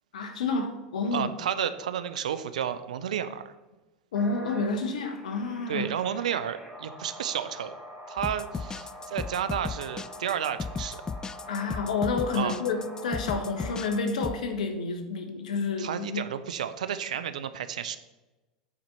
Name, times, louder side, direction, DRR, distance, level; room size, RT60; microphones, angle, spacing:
voice 1, 0.1-1.3 4.1-5.8 11.5-16.2, left 4 dB, 80° left, 6 dB, 1.2 m, -29 dB
voice 2, 1.1-3.5 5.7-7.7 8.1-11.0 12.3-12.6 15.8-18.0, right 9 dB, 80° right, 11 dB, 0.6 m, -31 dB
sound 1, 4.1-14.2, equal, 5° right, 2.4 m, -45 dB
sound 2, 8.2-14.4, left 4 dB, 20° left, 0.3 m, -35 dB
8.5 x 4.4 x 5.3 m, 1.1 s
hypercardioid pair, 90°, 4 cm